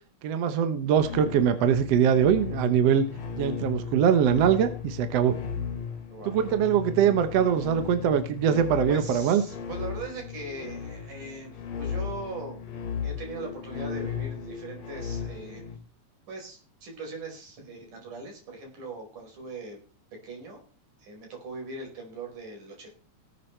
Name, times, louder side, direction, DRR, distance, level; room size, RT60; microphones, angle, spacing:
voice 1, 0.2-3.1 3.4-5.4 6.3-9.4, right 8 dB, 65° right, 9 dB, 1.9 m, -22 dB
sound 1, 0.9-15.8, left 6 dB, 60° left, 2.9 m, -36 dB
voice 2, 6.1-6.4 8.9-12.6 13.0-15.7 16.3-19.8 20.2-20.6 21.0-22.9, right 3 dB, 90° right, 1 dB, 6.3 m, -40 dB
18.5 x 8.3 x 4.5 m, 0.38 s
omnidirectional pair, 3.5 m